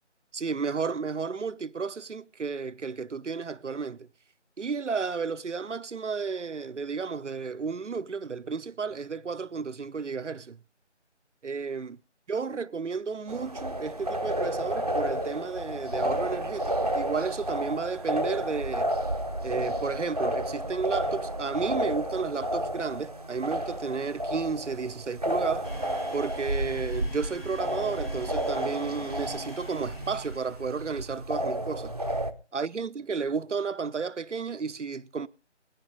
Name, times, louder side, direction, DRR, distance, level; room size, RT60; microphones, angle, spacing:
voice 1, 0.3-4.1 4.6-10.6 11.4-12.0 12.3-18.9 19.4-25.7 26.1-32.0 32.5-35.3, right 5 dB, 75° right, 0.9 m, -32 dB
sound 1, 13.3-32.3, right 1 dB, 35° right, 0.9 m, -31 dB
Domestic sounds home sounds, 25.6-31.1, left 1 dB, 55° left, 3.8 m, -47 dB
21.0 x 10.5 x 3.7 m
figure-of-eight pair, 175°, 36 cm